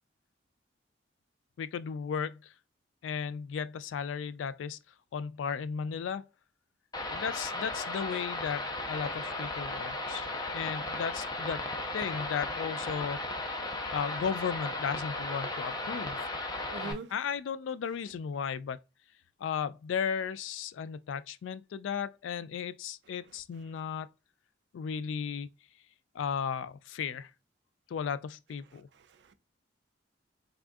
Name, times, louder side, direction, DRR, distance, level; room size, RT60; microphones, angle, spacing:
voice 1, 1.6-2.5 3.0-4.8 5.1-6.2 7.1-11.7 11.9-13.2 13.9-16.2 16.8-18.8 19.4-24.1 24.7-25.5 26.1-27.3 27.9-28.9, left 7 dB, 85° left, 0.3 m, -35 dB
sound 1, 6.9-16.9, left 2 dB, 20° left, 0.6 m, -36 dB
voice 2, 16.7-17.1 28.7-29.3, right 3 dB, 65° right, 0.4 m, -43 dB
3.5 x 2.3 x 2.5 m
head